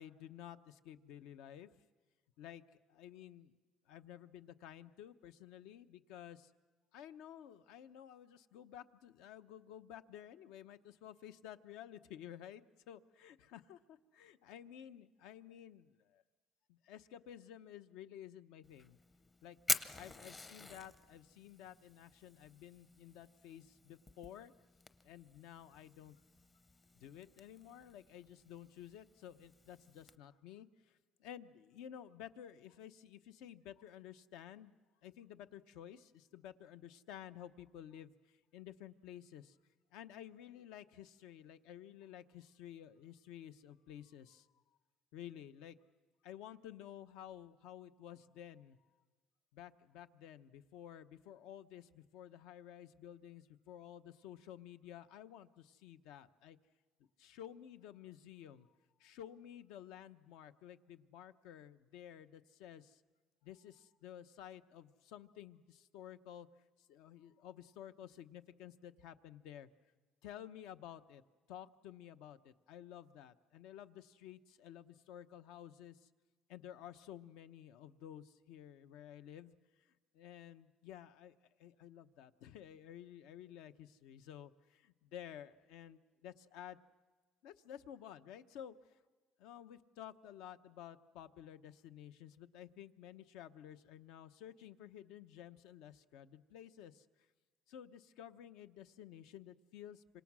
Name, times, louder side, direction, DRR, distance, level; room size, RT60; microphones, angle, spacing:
voice 1, 0.0-1.7 2.4-3.5 3.9-6.5 6.9-16.2 16.7-19.0 19.4-19.6 19.9-24.5 25.0-26.2 27.0-34.8 35.0-39.6 39.9-44.5 45.1-45.8 46.2-48.8 49.5-56.6 57.2-58.7 59.0-63.0 63.4-66.5 66.8-69.7 70.2-71.2 71.5-76.1 76.5-79.5 80.1-81.3 81.6-86.8 87.4-88.8 89.4-97.0 97.7-100.2, left 10 dB, 80° left, 11 dB, 0.9 m, -53 dB
Fire, 18.6-30.2, left 3 dB, 20° left, 0.7 m, -46 dB
26.5 x 26.0 x 6.2 m, 1.4 s
cardioid pair, 155°, 0 cm